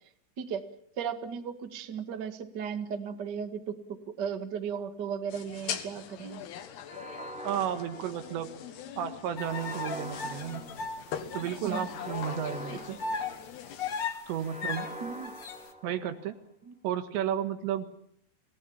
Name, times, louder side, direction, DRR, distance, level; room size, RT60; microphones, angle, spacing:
voice 1, 1.0-6.4 11.6-11.9 12.7-12.8 15.0-15.3 16.7-16.8, right 7 dB, 60° right, 7 dB, 1.0 m, -36 dB
sound 1, 5.3-14.1, left 9 dB, 70° left, 3.4 m, -42 dB
sound 2, 6.8-8.7 9.4-11.2 11.9-13.8 14.4-16.3, right 1 dB, 5° right, 1.3 m, -44 dB
voice 2, 7.4-8.5 9.0-10.6 11.3-13.0 14.3-14.9 15.8-16.4 16.8-18.0, right 10 dB, 80° right, 9 dB, 3.7 m, -33 dB
sound 3, 9.4-11.9 12.3-12.4 13.0-15.7, left 4 dB, 55° left, 1.3 m, -37 dB
28.5 x 18.0 x 7.3 m, 0.70 s
omnidirectional pair, 5.1 m